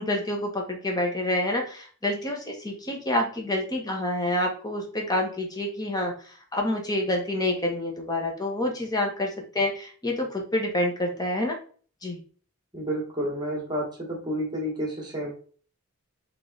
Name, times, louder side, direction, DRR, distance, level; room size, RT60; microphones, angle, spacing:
voice 1, 0.0-11.6 12.0-12.2, left 1 dB, 20° left, 1 dB, 1.0 m, -28 dB
voice 2, 12.7-15.3, equal, 20° right, -2 dB, 1.3 m, -30 dB
3.8 x 3.2 x 3.9 m, 0.43 s
head